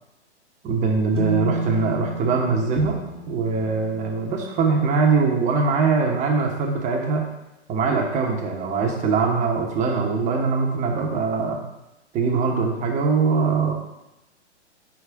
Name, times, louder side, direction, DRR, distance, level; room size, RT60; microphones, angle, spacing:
voice 1, 0.6-3.0 3.3-7.3 7.7-11.6 12.1-13.7, right 4 dB, 20° right, 1 dB, 0.9 m, -22 dB
sound 1, 1.1-4.7, right 2 dB, 85° right, 1.2 m, -31 dB
Bowed string instrument, 2.8-6.2, left 2 dB, 5° left, 0.3 m, -44 dB
5.0 x 4.8 x 4.6 m, 0.94 s
figure-of-eight pair, 115°, 35 cm